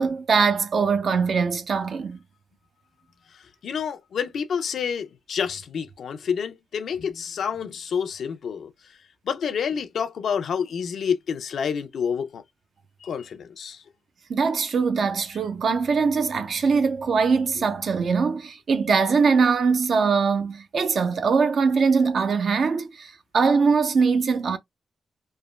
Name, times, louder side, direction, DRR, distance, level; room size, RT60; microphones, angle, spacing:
voice 1, 0.0-2.2 14.3-24.6, right 5 dB, 65° right, 0.5 m, -22 dB
voice 2, 3.3-8.7 9.3-12.4 13.0-13.8, left 7 dB, 80° left, 0.4 m, -28 dB
3.2 x 2.1 x 2.2 m
cardioid pair, 75°, 0 cm